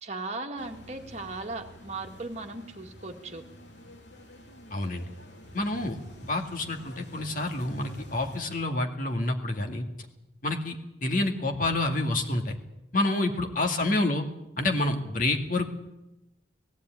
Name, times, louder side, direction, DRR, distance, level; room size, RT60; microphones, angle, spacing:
voice 1, 0.0-3.4 13.1-13.8, right 3 dB, 35° right, 3 dB, 1.9 m, -38 dB
sound 1, 0.6-8.5, equal, 75° left, 3.4 m, -47 dB
voice 2, 4.7-5.1 5.5-6.0 6.3-9.8 10.4-12.6 12.9-14.2 14.6-15.7, left 2 dB, 45° left, 3 dB, 2.2 m, -28 dB
18.0 x 15.5 x 9.2 m, 0.93 s
head